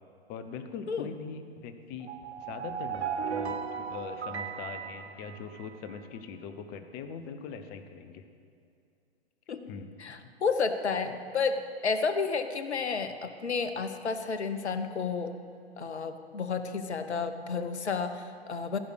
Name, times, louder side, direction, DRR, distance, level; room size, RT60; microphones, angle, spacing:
voice 1, 0.3-2.1 2.4-8.2 9.7-9.9, left 6 dB, 30° left, 9 dB, 0.8 m, -41 dB
sound 1, 2.0-6.0, right 7 dB, 80° right, 0.8 m, -36 dB
voice 2, 10.0-15.3 15.8-18.8, left 5 dB, 85° left, 9 dB, 0.8 m, -31 dB
15.0 x 5.1 x 6.5 m, 2.5 s
figure-of-eight pair, 110°, 33 cm